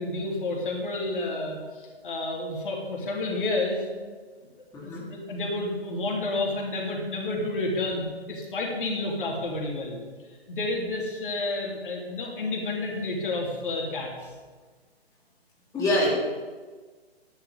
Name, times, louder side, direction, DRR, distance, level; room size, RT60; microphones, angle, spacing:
voice 1, 0.0-3.8 4.8-10.0 10.5-14.3, left 2 dB, 55° left, -1 dB, 3.4 m, -30 dB
voice 2, 15.7-16.1, left 1 dB, 10° left, -6 dB, 2.5 m, -24 dB
11.0 x 7.0 x 8.2 m, 1.4 s
figure-of-eight pair, 130°, 32 cm